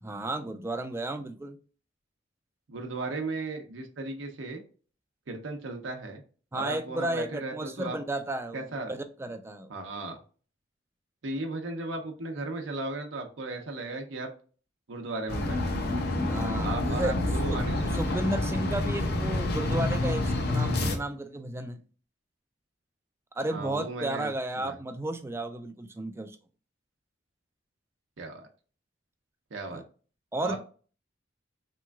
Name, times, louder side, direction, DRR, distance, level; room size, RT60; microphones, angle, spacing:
voice 1, 0.0-1.6 6.5-9.7 16.2-17.1 17.5-21.8 23.4-26.4 29.7-29.8 30.3-30.6, right 2 dB, 15° right, 0.3 m, -33 dB
voice 2, 2.7-4.6 5.3-6.2 6.5-8.0 8.5-8.9 9.7-10.2 11.2-14.3 14.9-15.6 16.6-18.1 23.5-24.8 28.2-28.5 29.5-29.8 30.4-30.6, right 2 dB, 80° right, 0.6 m, -36 dB
sound 1, 15.3-21.0, left 2 dB, 55° left, 0.6 m, -28 dB
3.4 x 3.0 x 2.3 m
head